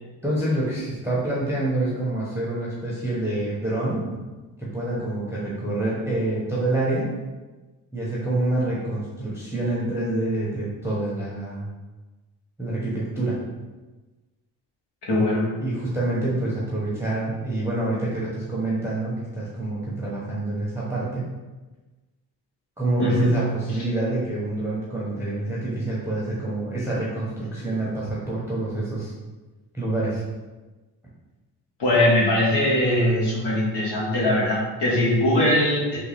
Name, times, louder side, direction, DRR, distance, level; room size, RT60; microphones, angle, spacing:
voice 1, 0.2-4.1 4.6-7.2 7.9-11.7 12.6-13.4 15.6-21.3 22.8-29.1 29.7-30.2, right 2 dB, 5° right, -7 dB, 0.9 m, -27 dB
voice 2, 15.1-15.4 23.0-23.4 31.8-36.0, left 1 dB, 60° left, -5 dB, 1.5 m, -21 dB
3.6 x 2.3 x 3.4 m, 1.2 s
supercardioid pair, 70°, 46 cm